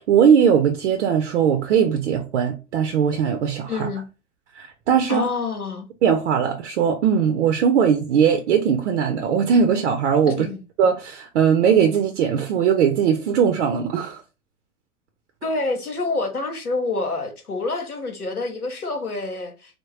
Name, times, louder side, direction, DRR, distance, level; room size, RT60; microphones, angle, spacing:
voice 1, 0.1-3.9 4.6-5.3 6.0-10.5 10.8-14.2, right 7 dB, 55° right, 0.7 m, -19 dB
voice 2, 3.7-4.0 5.1-5.9 10.3-10.6 15.4-19.8, left 3 dB, 85° left, 0.9 m, -27 dB
3.5 x 2.1 x 3.1 m
figure-of-eight pair, 95°, 43 cm